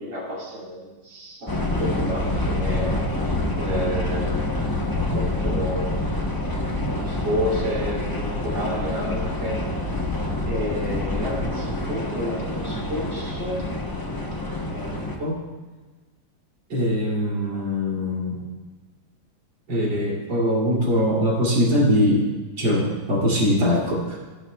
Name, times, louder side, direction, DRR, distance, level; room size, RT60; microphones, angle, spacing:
voice 1, 0.0-3.0 3.6-4.7 5.1-6.2 7.0-9.6 10.5-13.6 14.7-15.4 16.7-18.4 19.7-22.3 22.6-24.2, equal, 65° right, -4 dB, 3.6 m, -25 dB
sound 1, 1.5-15.2, left 1 dB, 25° left, 0.4 m, -26 dB
16.0 x 10.0 x 2.3 m, 1.3 s
omnidirectional pair, 2.2 m